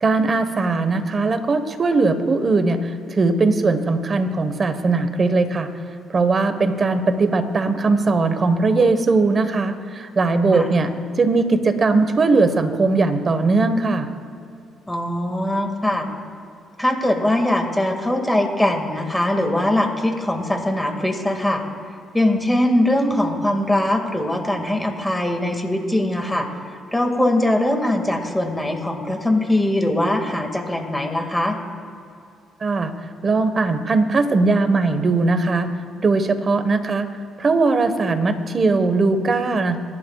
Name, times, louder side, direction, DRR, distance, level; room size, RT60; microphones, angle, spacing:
voice 1, 0.0-5.7 6.1-10.9 11.2-14.1 32.6-32.9 33.2-35.7 36.0-37.1 37.4-39.8, right 3 dB, 40° right, 9 dB, 1.3 m, -19 dB
voice 2, 14.9-16.1 16.8-21.6 22.1-26.5 26.9-31.6, left 1 dB, 10° left, 3 dB, 2.1 m, -21 dB
25.5 x 11.0 x 2.4 m, 2.5 s
cardioid pair, 80°, 0 cm